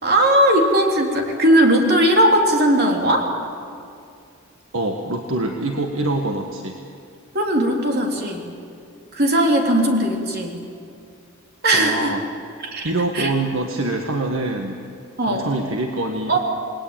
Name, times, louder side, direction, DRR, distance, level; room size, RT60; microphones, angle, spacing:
voice 1, 0.0-3.3 7.3-8.4 9.1-10.6 11.6-12.1 12.6-13.3 15.2-15.5 16.3-16.4, right 1 dB, 45° right, 1 dB, 3.6 m, -18 dB
voice 2, 4.7-6.8 11.7-12.2 12.8-14.8 15.2-16.4, right 2 dB, 65° right, 3 dB, 1.7 m, -25 dB
28.5 x 20.5 x 9.1 m, 2.4 s
head